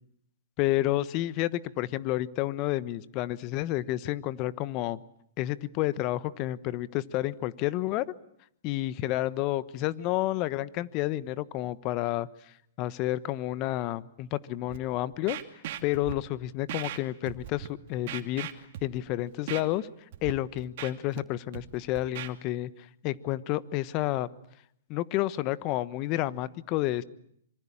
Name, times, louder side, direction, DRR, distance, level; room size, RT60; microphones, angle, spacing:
voice 1, 0.6-5.0 5.4-8.1 8.6-12.3 12.8-15.4 15.8-18.5 18.8-19.9 20.2-22.7 23.0-24.3 24.9-27.0, left 15 dB, 35° left, 17 dB, 1.2 m, -30 dB
Scratching (performance technique), 14.7-14.8 15.3-16.1 16.7-17.0 17.2-17.7 18.1-19.0 19.5-19.6 20.1-20.3 20.6-21.2 21.5-22.3, right 13 dB, 55° right, 2.6 m, -38 dB
26.0 x 24.5 x 8.7 m, 0.72 s
hypercardioid pair, 125°, 0 cm